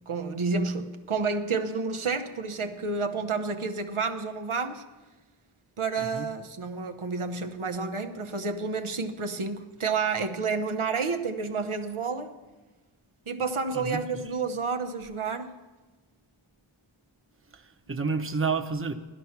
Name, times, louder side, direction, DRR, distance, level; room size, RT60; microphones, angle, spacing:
voice 1, 0.1-4.8 5.8-12.3 13.3-15.5, right 4 dB, 85° right, 1.0 m, -30 dB
voice 2, 13.7-14.3 17.5-18.9, right 4 dB, 25° right, 0.9 m, -31 dB
16.0 x 12.5 x 5.9 m
wide cardioid pair, 50°, 48 cm